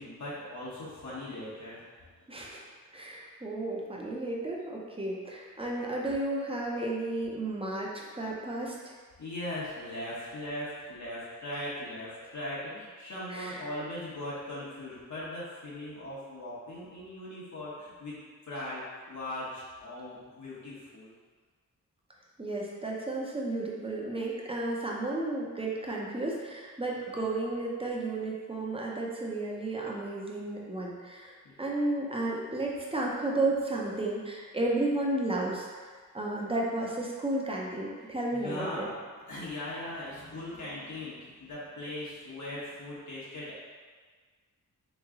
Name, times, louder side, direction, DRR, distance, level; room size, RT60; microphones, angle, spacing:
voice 1, 0.0-1.9 9.2-21.1 27.0-27.3 31.4-31.5 38.3-38.9 39.3-43.6, left 1 dB, 60° left, -7 dB, 1.1 m, -39 dB
voice 2, 2.3-2.7 2.9-9.0 13.3-13.7 22.4-38.9, right 2 dB, 15° right, -3 dB, 0.6 m, -33 dB
3.6 x 3.1 x 3.6 m, 1.5 s
wide cardioid pair, 120°, 33 cm